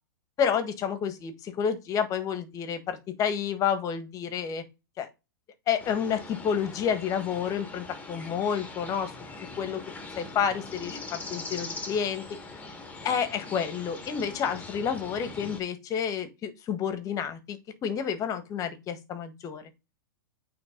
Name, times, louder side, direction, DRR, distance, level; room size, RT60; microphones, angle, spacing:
voice 1, 0.4-4.6 5.0-5.1 5.7-9.1 9.6-9.8 10.1-12.2 13.0-17.6 17.8-19.7, left 7 dB, 30° left, 11 dB, 1.5 m, -29 dB
sound 1, 5.8-15.6, left 3 dB, 15° left, 1.7 m, -42 dB
8.8 x 3.6 x 3.8 m, 0.25 s
hypercardioid pair, 120°, 11 cm